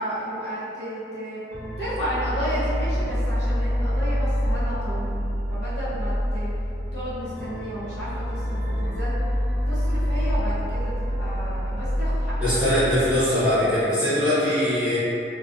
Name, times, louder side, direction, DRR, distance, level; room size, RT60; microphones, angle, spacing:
voice 1, 0.0-1.4 1.8-6.5 6.9-9.2 9.7-12.9, equal, 70° left, -12 dB, 0.7 m, -32 dB
sound 1, 1.5-13.2, equal, 65° right, 0.7 m, -26 dB
voice 2, 12.4-15.0, left 1 dB, 5° right, -17 dB, 0.8 m, -21 dB
2.5 x 2.3 x 2.3 m, 2.7 s
head